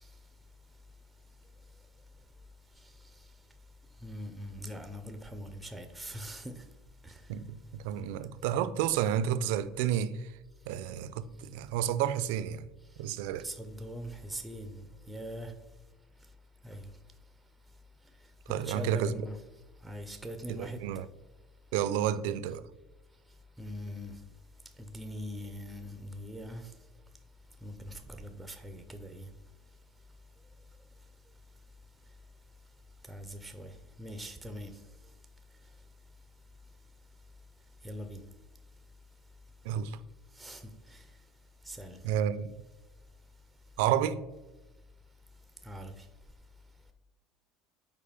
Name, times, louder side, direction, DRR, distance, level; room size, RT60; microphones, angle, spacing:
voice 1, 4.0-6.6 7.0-7.2 13.4-15.5 16.6-16.9 18.6-19.4 19.8-20.8 23.6-24.1 24.9-26.7 27.6-29.3 33.1-33.7 34.0-34.7 37.8-38.2 40.4-41.0 41.7-42.0 45.6-45.9, equal, 5° right, 0.4 m, -42 dB
voice 2, 7.3-10.1 10.7-12.7 13.0-13.5 18.5-19.1 20.5-21.0 21.7-22.6 39.7-39.9 42.0-42.5 43.8-44.2, right 10 dB, 75° right, 0.4 m, -30 dB
5.4 x 4.4 x 5.0 m
cardioid pair, 175°, 0 cm